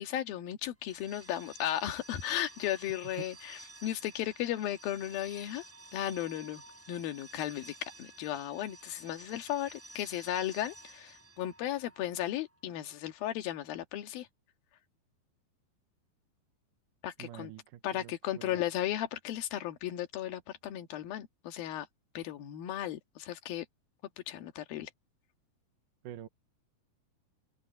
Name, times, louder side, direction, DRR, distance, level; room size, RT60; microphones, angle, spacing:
voice 1, 0.0-5.6 5.9-6.6 6.9-14.3 17.0-17.5 17.8-21.9 22.1-23.6 24.3-24.9, left 12 dB, 70° left, 3.4 m, -35 dB
sound 1, 0.8-12.5, right 2 dB, 5° right, 5.6 m, -53 dB
voice 2, 17.2-18.6 26.0-26.3, right 13 dB, 70° right, 2.3 m, -46 dB
omnidirectional pair, 4.4 m